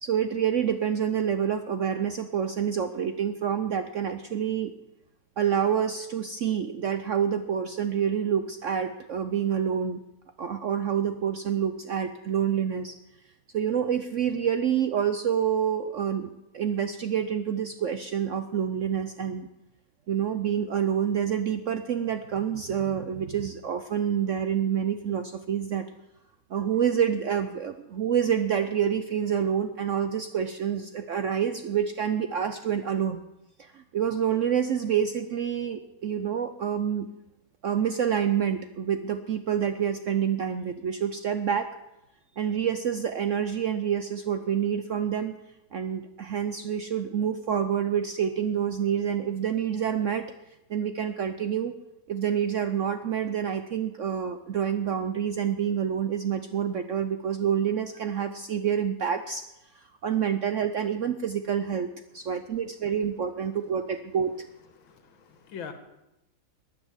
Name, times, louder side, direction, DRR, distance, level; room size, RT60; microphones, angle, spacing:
voice 1, 0.0-4.7 5.4-10.0 10.4-13.0 13.5-19.5 20.1-25.9 26.5-33.2 33.6-37.1 37.6-41.8 42.4-45.3 45.7-50.3 50.7-51.7 52.1-59.4 59.7-64.5, right 8 dB, 80° right, 9 dB, 0.6 m, -27 dB
voice 2, 62.1-62.5 64.6-65.7, left 7 dB, 80° left, 8 dB, 2.2 m, -44 dB
13.0 x 9.5 x 8.0 m, 0.92 s
omnidirectional pair, 2.2 m